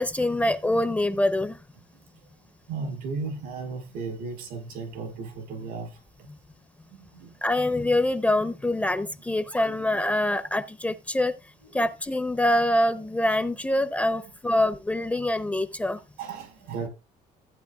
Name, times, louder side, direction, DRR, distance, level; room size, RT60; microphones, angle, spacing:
voice 1, 0.0-1.6 7.4-11.3 11.7-16.0, left 1 dB, 10° left, 0.6 m, -25 dB
voice 2, 2.7-6.0 7.0-7.3 9.6-9.8 11.7-11.8 14.5-14.6 16.2-16.9, right 4 dB, 85° right, 4.9 m, -35 dB
15.5 x 8.9 x 2.3 m
cardioid pair, 130°, 16 cm